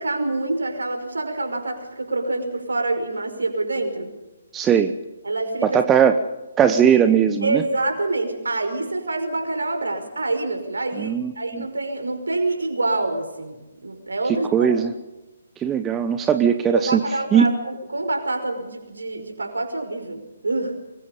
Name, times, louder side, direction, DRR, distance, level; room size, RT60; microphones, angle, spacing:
voice 1, 0.0-4.1 5.2-5.8 7.4-14.7 16.7-20.7, right 2 dB, 65° right, 5 dB, 5.5 m, -26 dB
voice 2, 4.5-4.9 5.6-6.1 6.6-7.6 11.0-11.7 14.3-14.9 15.6-17.0 17.3-17.5, right 8 dB, 15° right, 8 dB, 1.0 m, -19 dB
25.5 x 21.5 x 5.4 m, 1.1 s
figure-of-eight pair, 135°, 0 cm